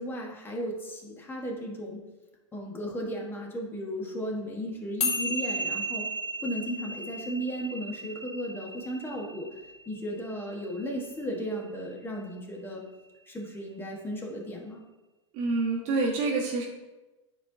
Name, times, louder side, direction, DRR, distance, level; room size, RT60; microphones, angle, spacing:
voice 1, 0.0-2.0 2.5-6.0 6.4-9.5 9.9-12.8 13.3-14.8, equal, 15° left, 0 dB, 1.3 m, -35 dB
sound 1, 5.0-11.6, equal, 35° left, 1.1 m, -35 dB
voice 2, 15.3-16.6, right 3 dB, 45° right, -2 dB, 1.5 m, -27 dB
9.8 x 4.4 x 2.7 m, 1.1 s
hypercardioid pair, 120°, 16 cm